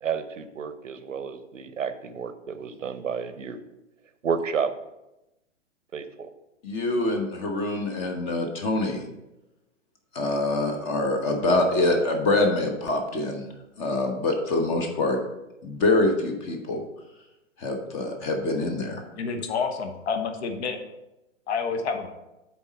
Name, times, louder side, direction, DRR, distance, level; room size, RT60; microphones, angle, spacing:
voice 1, 0.0-3.6 4.2-4.7 5.9-6.3, right 6 dB, 90° right, 10 dB, 0.8 m, -31 dB
voice 2, 6.6-9.1 10.1-13.5 13.8-15.2 15.6-16.8 17.6-19.0, left 2 dB, 30° left, 3 dB, 1.0 m, -25 dB
voice 3, 19.2-20.8 21.5-22.1, left 5 dB, 60° left, 6 dB, 1.0 m, -28 dB
7.0 x 4.2 x 5.3 m, 0.94 s
hypercardioid pair, 120°, 37 cm